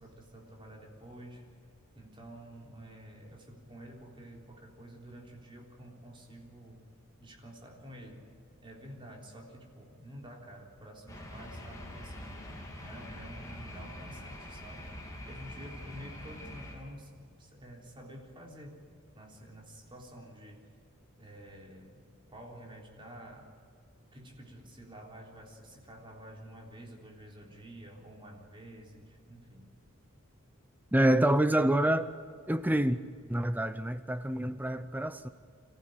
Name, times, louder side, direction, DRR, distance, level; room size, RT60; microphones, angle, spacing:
voice 1, 0.0-1.4 2.0-6.9 7.2-8.3 8.6-12.5 12.8-20.7 21.1-22.0 22.3-23.5 24.1-29.7, right 1 dB, 25° right, 0 dB, 3.6 m, -50 dB
sound 1, 11.1-16.8, left 1 dB, 15° left, 3.5 m, -44 dB
voice 2, 30.9-32.1 32.5-33.0 33.3-35.3, right 1 dB, 10° right, 11 dB, 0.6 m, -27 dB
26.5 x 15.0 x 9.1 m, 2.2 s
head